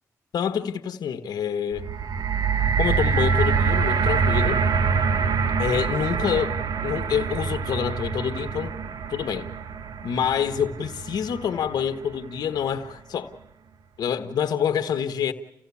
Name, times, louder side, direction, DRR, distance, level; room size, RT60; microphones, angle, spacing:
voice 1, 0.3-1.9 2.8-4.6 5.6-6.5 6.8-8.7 9.1-9.5 10.0-13.3 14.0-15.3, left 8 dB, 80° left, 1.3 m, -26 dB
sound 1, 1.7-12.0 12.7-12.8, right 5 dB, 75° right, 1.3 m, -25 dB
29.5 x 16.0 x 8.5 m
cardioid pair, 70°, 7 cm